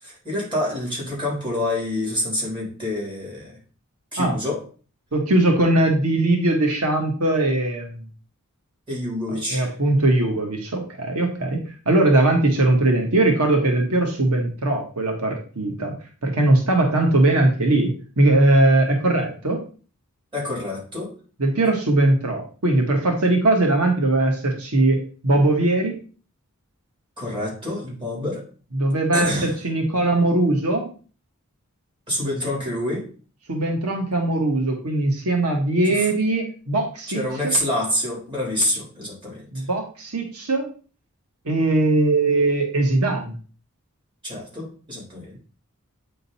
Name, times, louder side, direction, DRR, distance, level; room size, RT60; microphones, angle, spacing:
voice 1, 0.0-3.6 4.1-4.6 8.9-9.7 20.3-21.1 27.2-28.4 29.1-29.6 32.1-33.1 35.8-36.1 37.1-39.5 44.2-45.4, left 1 dB, 25° right, -4 dB, 3.8 m, -27 dB
voice 2, 5.1-8.0 9.5-11.6 11.8-15.9 16.2-17.9 18.2-19.6 21.4-25.9 28.7-30.9 33.5-37.2 39.5-40.7 41.4-43.3, right 2 dB, 90° right, 2 dB, 1.4 m, -20 dB
8.4 x 3.8 x 4.2 m, 0.39 s
head